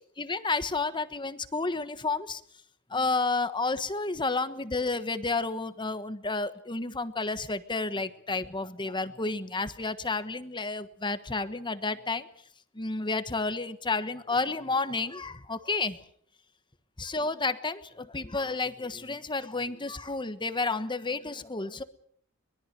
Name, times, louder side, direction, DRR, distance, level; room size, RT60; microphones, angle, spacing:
voice 1, 0.2-2.4 2.9-12.3 12.7-16.0 17.0-21.8, left 3 dB, 20° left, 11 dB, 1.3 m, -31 dB
24.0 x 21.5 x 6.8 m, 0.63 s
head